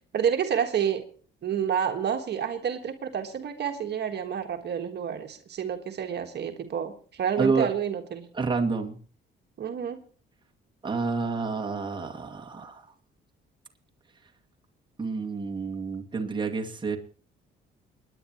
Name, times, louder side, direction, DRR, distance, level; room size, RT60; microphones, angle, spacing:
voice 1, 0.1-1.1 1.4-8.3 9.6-10.0, right 8 dB, 60° right, 5 dB, 1.5 m, -29 dB
voice 2, 7.4-7.7 8.3-9.0 10.8-12.9 15.0-17.0, right 4 dB, 25° right, 1 dB, 2.1 m, -28 dB
29.0 x 10.0 x 3.0 m, 0.42 s
cardioid pair, 90°, 20 cm